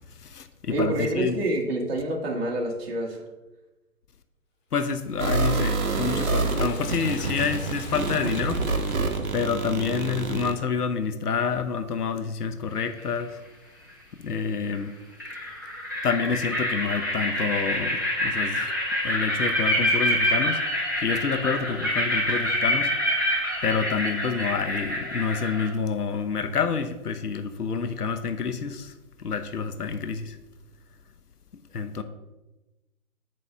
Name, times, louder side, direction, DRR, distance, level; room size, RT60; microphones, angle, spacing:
voice 1, 0.2-1.4 4.7-8.6 9.3-13.4 14.2-14.9 16.0-18.7 19.0-20.6 21.0-22.9 23.6-28.9 29.2-30.4 31.7-32.0, left 6 dB, 80° left, 0.8 m, -28 dB
voice 2, 0.7-3.2, right 1 dB, 40° right, 1.6 m, -27 dB
Liquid, 5.0-9.7, left 2 dB, 30° left, 1.8 m, -40 dB
sound 1, 5.2-10.5, right 3 dB, 65° right, 1.1 m, -27 dB
sound 2, 12.8-13.2 14.7-14.8 15.2-25.7, equal, 15° right, 0.5 m, -26 dB
8.5 x 3.2 x 6.5 m
figure-of-eight pair, 140°, 46 cm